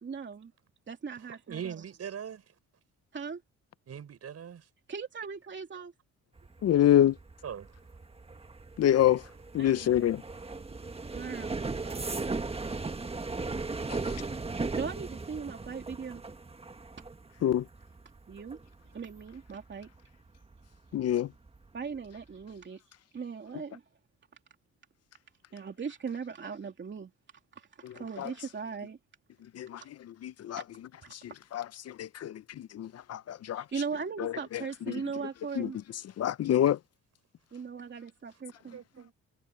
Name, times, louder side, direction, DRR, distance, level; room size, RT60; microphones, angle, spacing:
voice 1, 0.0-0.5 0.9-1.8 3.1-3.4 4.9-5.9 9.6-10.1 10.4-10.5 11.1-12.4 14.7-16.2 18.3-18.6 18.9-19.9 21.7-22.8 23.1-23.8 25.5-27.1 27.5-29.0 29.8-29.9 30.5-30.6 31.0-31.2 33.5-35.8 37.5-39.0, right 6 dB, 40° right, 2.8 m, -39 dB
voice 2, 1.5-2.4 3.9-4.6 7.4-7.7 38.7-39.1, right 8 dB, 55° right, 6.4 m, -40 dB
sound 1, 6.4-21.0 21.3-21.8 22.1-22.4, right 3 dB, 20° right, 1.6 m, -38 dB
voice 3, 6.6-7.1 8.8-9.2 9.5-10.2 17.4-17.6 20.9-21.3 28.2-28.3 29.6-29.8 30.2-30.6 31.5-31.6 32.0-32.3 32.7-33.6 34.2-34.3 35.6-35.7 36.2-36.8, left 11 dB, 55° left, 0.6 m, -25 dB
cardioid pair, 90°, 30 cm